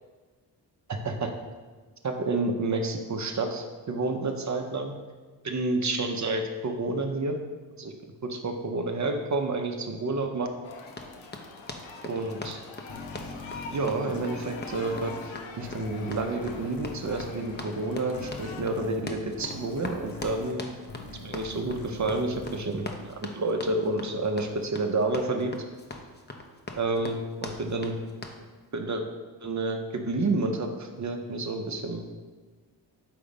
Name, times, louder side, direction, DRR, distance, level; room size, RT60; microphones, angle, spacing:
voice 1, 0.9-1.3 2.0-4.9 5.4-7.4 7.8-7.9 8.2-10.5 12.0-12.6 13.7-15.1 15.5-20.7 21.2-25.5 26.8-27.9 28.7-29.0 29.4-32.1, right 2 dB, 35° right, 4 dB, 0.7 m, -29 dB
sound 1, 10.6-18.6, left 4 dB, 70° left, 0.8 m, -44 dB
Run, 10.9-28.4, left 2 dB, 20° left, 0.8 m, -41 dB
sound 2, 12.9-24.1, left 2 dB, 45° left, 1.2 m, -44 dB
5.1 x 3.7 x 5.3 m, 1.4 s
supercardioid pair, 45°, 49 cm